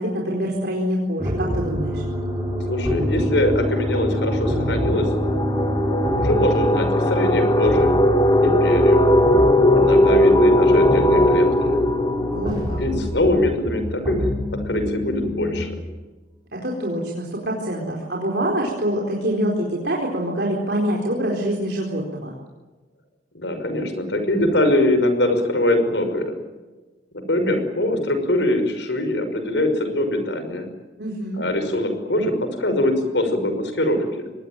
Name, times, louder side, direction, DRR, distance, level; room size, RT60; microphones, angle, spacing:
voice 1, 0.0-2.0 12.3-12.8 16.5-22.3 31.0-31.4, right 1 dB, 60° right, -1 dB, 4.4 m, -25 dB
sound 1, 1.2-15.6, equal, 20° right, 4.0 m, -26 dB
sound 2, 1.4-1.7 2.0-13.5, left 1 dB, 20° left, 1.7 m, -19 dB
voice 2, 2.7-5.1 6.2-8.0 8.4-9.0 9.8-11.8 12.8-15.8 23.3-26.4 27.1-30.7 31.4-34.0, left 1 dB, 70° left, 8 dB, 5.9 m, -22 dB
25.0 x 20.5 x 9.1 m, 1.2 s
head